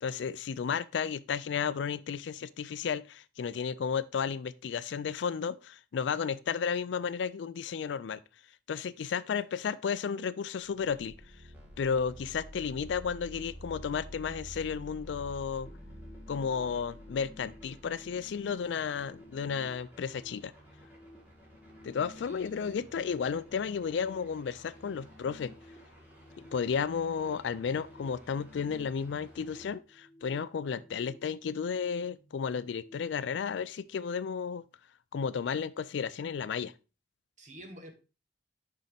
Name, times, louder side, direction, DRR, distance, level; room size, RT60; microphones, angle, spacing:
voice 1, 0.0-8.2 8.7-11.1 11.8-15.7 16.3-20.5 21.8-25.5 26.5-34.6 35.1-36.7, left 6 dB, 75° left, 0.4 m, -33 dB
sound 1, 10.6-18.4, equal, 70° right, 1.8 m, -48 dB
sound 2, 11.5-29.7, equal, 10° right, 2.1 m, -58 dB
sound 3, 15.6-32.9, left 1 dB, 15° left, 0.7 m, -55 dB
voice 2, 22.2-22.9 37.4-37.9, equal, 40° right, 1.2 m, -50 dB
6.3 x 5.4 x 3.4 m
head